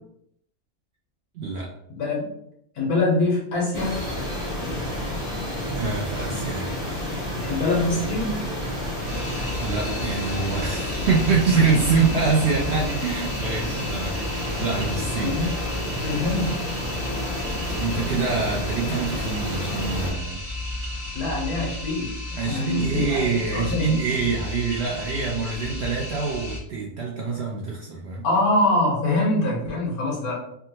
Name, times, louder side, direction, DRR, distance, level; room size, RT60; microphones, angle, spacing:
voice 1, 1.3-1.7 5.7-6.7 9.6-15.4 17.8-20.4 22.4-28.2, right 4 dB, 70° right, -2 dB, 0.6 m, -25 dB
voice 2, 2.0-2.3 2.8-4.0 7.4-8.4 15.2-15.5 16.0-16.6 21.1-23.2 23.5-23.9 28.2-30.3, left 2 dB, 75° left, -3 dB, 1.5 m, -24 dB
sound 1, 3.7-20.1, left 1 dB, 30° left, 1.1 m, -30 dB
sound 2, 9.1-26.6, left 2 dB, 35° right, 0.9 m, -34 dB
3.5 x 2.2 x 2.8 m, 0.75 s
omnidirectional pair, 1.6 m